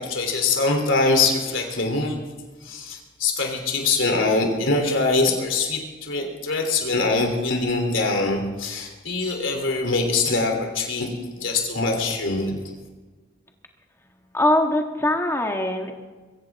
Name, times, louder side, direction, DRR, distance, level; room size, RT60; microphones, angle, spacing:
voice 1, 0.0-2.3 2.6-11.1 11.4-12.6, left 3 dB, 70° left, 2 dB, 3.2 m, -23 dB
voice 2, 14.3-15.9, left 1 dB, 15° left, 3 dB, 1.5 m, -22 dB
22.0 x 16.0 x 3.6 m, 1.3 s
head